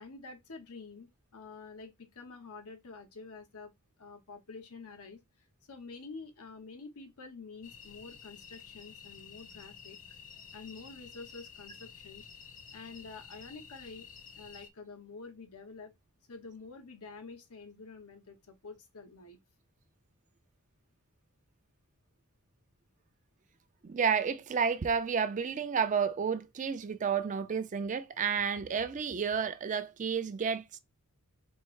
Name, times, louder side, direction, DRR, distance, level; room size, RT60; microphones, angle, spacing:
voice 1, 0.0-3.7 4.0-10.0 10.5-12.3 12.7-14.1 14.4-15.9 16.3-19.4, left 4 dB, 80° left, 0.9 m, -48 dB
sound 1, 7.6-14.7, left 6 dB, 40° left, 0.7 m, -51 dB
voice 2, 23.8-30.8, right 6 dB, 35° right, 0.4 m, -31 dB
4.4 x 2.0 x 4.5 m
head